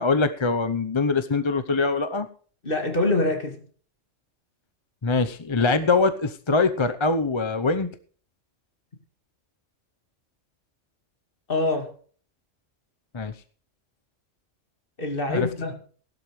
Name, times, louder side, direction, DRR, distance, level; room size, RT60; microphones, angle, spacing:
voice 1, 0.0-2.3 5.0-7.9 13.1-13.3 15.3-15.5, left 3 dB, 25° left, 0.7 m, -23 dB
voice 2, 2.6-3.6 11.5-11.9 15.0-15.8, left 2 dB, 45° left, 2.6 m, -25 dB
17.0 x 12.0 x 3.2 m
omnidirectional pair, 1.3 m